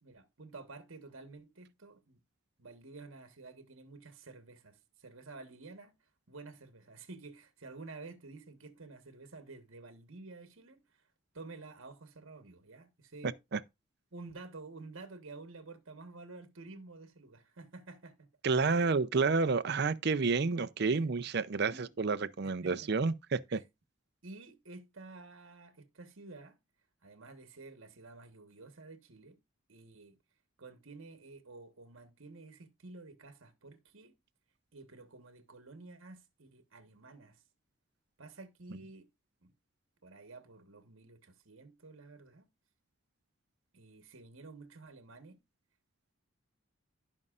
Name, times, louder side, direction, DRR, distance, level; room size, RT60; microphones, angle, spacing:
voice 1, 0.0-2.2 2.6-11.0 11.3-13.4 14.1-18.3 18.7-18.9 20.9-21.1 21.6-22.0 22.4-23.1 23.5-23.6 24.2-26.6 27.0-29.4 29.7-30.2 30.6-34.1 34.7-37.4 38.2-39.1 39.4-39.5 40.0-42.5 43.7-45.4, right 3 dB, 65° right, 1.2 m, -51 dB
voice 2, 13.2-13.6 18.4-23.6, right 4 dB, 50° right, 0.5 m, -30 dB
16.0 x 5.4 x 2.4 m
head